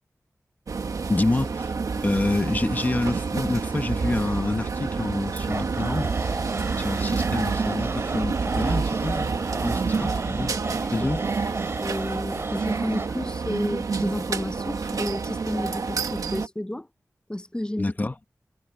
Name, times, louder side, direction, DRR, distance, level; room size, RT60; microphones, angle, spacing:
sound 1, 0.7-16.5, right 4 dB, 85° right, 1.4 m, -28 dB
voice 1, 1.1-1.7 2.0-6.1 6.8-10.5 10.9-11.2 17.8-18.1, left 2 dB, 30° left, 1.3 m, -27 dB
sound 2, 5.5-13.1, right 2 dB, 45° right, 4.6 m, -35 dB
voice 2, 11.8-16.9 17.3-17.9, left 1 dB, 15° left, 1.1 m, -31 dB
wide cardioid pair, 65°, 6 cm